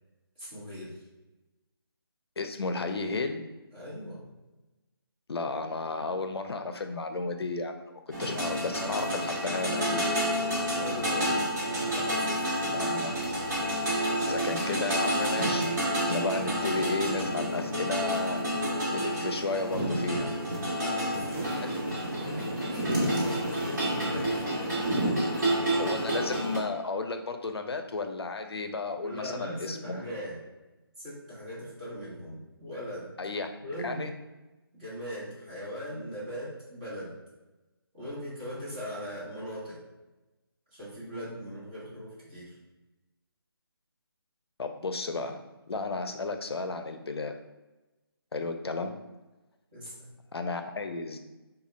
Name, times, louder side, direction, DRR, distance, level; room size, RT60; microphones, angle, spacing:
voice 1, 0.4-1.0 3.7-4.2 10.8-11.4 11.9-12.6 20.7-24.7 29.0-30.4 31.0-33.1 33.6-34.0 34.7-37.1 37.9-39.8 40.7-42.6 49.7-50.1, equal, 20° right, -10 dB, 1.3 m, -39 dB
voice 2, 2.4-3.5 5.3-10.1 12.7-13.2 14.3-18.4 18.9-20.3 21.6-21.9 25.8-30.1 33.2-33.5 33.8-34.1 44.6-45.4 45.7-47.3 48.3-49.0 50.3-51.2, left 3 dB, 80° left, 6 dB, 0.5 m, -33 dB
sound 1, 8.1-26.6, equal, 45° right, 1.3 m, -29 dB
3.7 x 2.3 x 3.1 m, 1.1 s
figure-of-eight pair, 165°, 13 cm